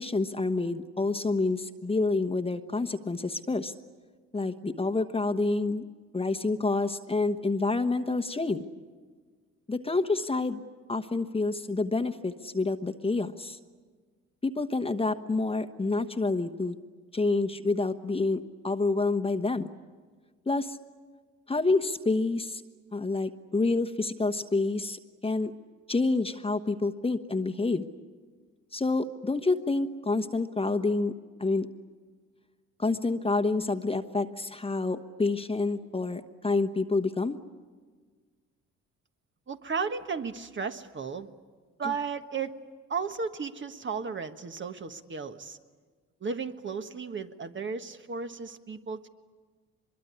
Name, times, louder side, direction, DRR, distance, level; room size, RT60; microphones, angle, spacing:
voice 1, 0.0-3.7 4.3-5.8 6.1-8.6 9.7-10.6 10.9-13.6 14.4-16.8 17.1-19.7 20.5-20.8 21.5-22.6 22.9-25.5 25.9-27.9 28.7-31.1 31.4-31.7 32.8-37.4 41.8-41.9, left 3 dB, 20° left, 9 dB, 1.1 m, -28 dB
voice 2, 39.5-41.3 41.8-42.5 42.9-45.6 46.2-49.1, right 5 dB, 40° right, 8 dB, 1.5 m, -34 dB
24.0 x 22.0 x 9.8 m, 1.5 s
cardioid pair, 90°, 30 cm